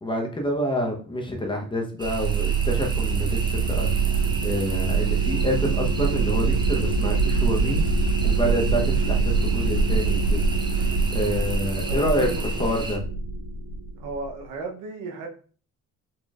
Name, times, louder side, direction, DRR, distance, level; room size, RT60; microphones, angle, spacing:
voice 1, 0.0-4.2 4.4-7.9 8.2-13.0, equal, 15° left, 1 dB, 0.8 m, -28 dB
sound 1, 2.0-13.0, right 2 dB, 15° right, 0.6 m, -37 dB
sound 2, 2.0-14.3, right 4 dB, 70° right, 1.3 m, -24 dB
voice 2, 11.9-12.4 12.7-12.8 14.0-15.3, right 4 dB, 90° right, 2 dB, 0.8 m, -34 dB
4.3 x 3.0 x 2.4 m, 0.41 s
cardioid pair, 90°, 30 cm